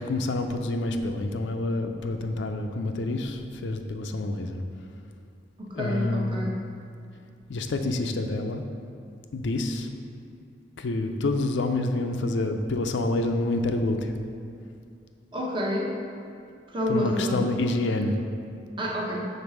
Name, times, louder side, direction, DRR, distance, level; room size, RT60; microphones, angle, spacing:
voice 1, 0.0-4.6 5.7-6.5 7.5-8.6 9.3-9.9 10.8-14.1 16.9-18.2, left 2 dB, 80° left, 6 dB, 0.5 m, -27 dB
voice 2, 5.6-6.6 15.3-16.0 16.7-17.5 18.8-19.2, equal, 30° right, -2 dB, 0.8 m, -29 dB
5.3 x 4.0 x 6.0 m, 2.3 s
head